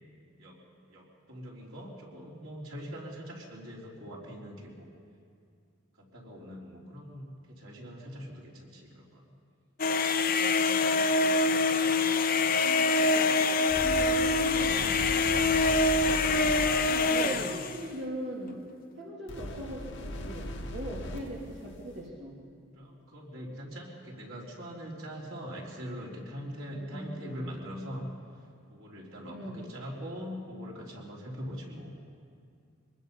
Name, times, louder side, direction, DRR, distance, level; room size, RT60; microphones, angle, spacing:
voice 1, 0.4-4.9 6.0-9.3 17.2-17.5 22.7-28.1 28.7-31.9, equal, 90° right, -3 dB, 3.9 m, -42 dB
sound 1, 9.8-17.8, left 3 dB, 45° left, 0.8 m, -25 dB
voice 2, 10.4-12.2 12.6-13.3 13.6-16.6 16.9-18.6 19.0-22.4 26.7-27.4 29.3-29.7, equal, 55° right, -4 dB, 2.9 m, -41 dB
sound 2, 13.7-17.0 19.3-21.3, left 1 dB, 65° left, 2.0 m, -38 dB
25.0 x 20.0 x 5.5 m, 2.3 s
head